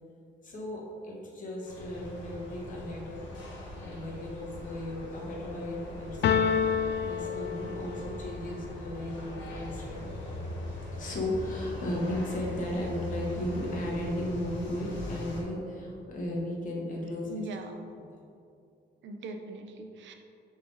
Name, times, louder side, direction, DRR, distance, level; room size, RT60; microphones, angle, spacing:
voice 1, 0.4-3.3 3.8-6.5 7.0-10.1 10.9-17.4 18.0-18.1, left 1 dB, 45° left, -3 dB, 1.3 m, -35 dB
sound 1, 1.7-15.4, left 1 dB, 85° left, 1.3 m, -41 dB
sound 2, 6.2-8.2, left 7 dB, 65° left, 0.4 m, -28 dB
voice 2, 17.3-17.9 19.0-20.1, right 2 dB, 85° right, 5 dB, 0.7 m, -40 dB
6.6 x 4.2 x 4.0 m, 2.5 s
cardioid pair, 130°, 19 cm